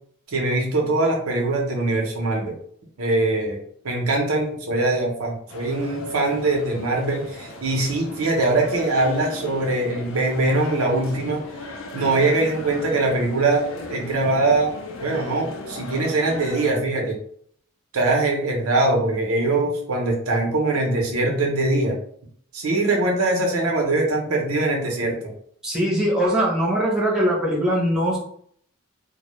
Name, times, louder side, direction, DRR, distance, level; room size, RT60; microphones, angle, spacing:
voice 1, 0.3-2.5 3.0-3.6 3.8-11.4 11.9-14.7 15.0-17.2 17.9-22.0 22.5-25.2, right 2 dB, 85° right, 0 dB, 0.6 m, -22 dB
sound 1, 5.5-16.7, left 2 dB, 65° left, 0.4 m, -37 dB
voice 2, 25.6-28.2, equal, 5° right, -5 dB, 0.6 m, -21 dB
2.1 x 2.0 x 2.9 m, 0.62 s
head